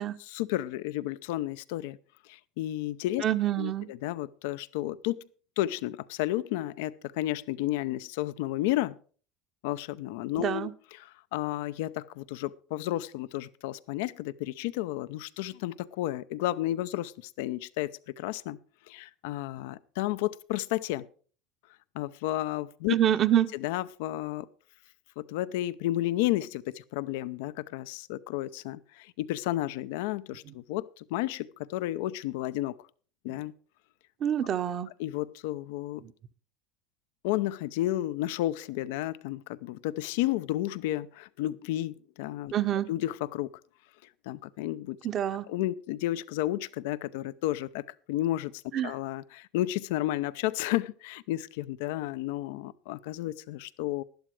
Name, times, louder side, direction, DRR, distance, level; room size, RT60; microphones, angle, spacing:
voice 1, 0.2-2.0 2.3-3.2 3.6-5.2 5.6-9.0 9.6-18.6 18.9-21.1 21.9-22.9 23.5-24.5 25.2-32.7 33.2-33.5 35.0-36.0 37.2-42.5 42.9-43.5 44.3-45.0 45.5-54.0, left 15 dB, 80° left, 0.6 m, -32 dB
voice 2, 3.2-3.9 10.4-10.7 22.9-23.5 34.2-34.9 36.0-36.1 42.5-42.9 45.0-45.5 48.7-48.9, right 11 dB, 45° right, 1.0 m, -26 dB
11.5 x 11.5 x 4.7 m
supercardioid pair, 110°, 0 cm